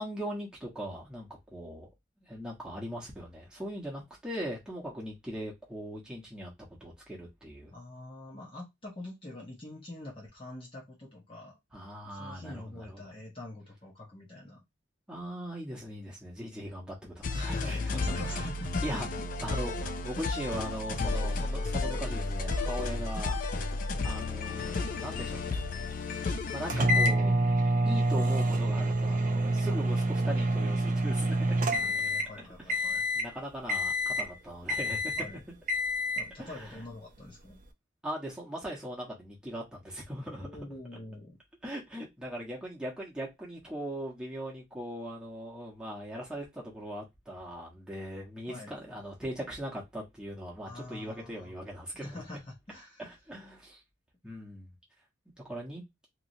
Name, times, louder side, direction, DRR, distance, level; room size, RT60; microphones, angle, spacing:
voice 1, 0.0-1.9 2.2-7.7 11.7-13.0 15.1-18.4 18.8-19.1 19.4-23.4 23.7-25.6 26.5-27.3 27.9-31.4 32.4-35.1 36.4-36.8 38.0-40.5 41.6-52.2 53.0-53.8 54.2-54.7 55.4-55.8, equal, 5° right, 1.1 m, -40 dB
voice 2, 7.7-11.6 12.0-14.6 17.3-19.3 19.5-19.7 31.5-33.0 35.2-35.4 36.2-37.6 40.4-41.4 48.5-48.7 50.7-51.5 52.0-53.0, left 1 dB, 25° left, 0.8 m, -45 dB
sound 1, 17.2-26.9, left 3 dB, 45° left, 0.4 m, -33 dB
sound 2, 26.7-32.4 32.7-33.3 33.7-34.3 34.7-35.3 35.7-36.3, right 1 dB, 40° right, 0.5 m, -27 dB
2.9 x 2.7 x 2.6 m
head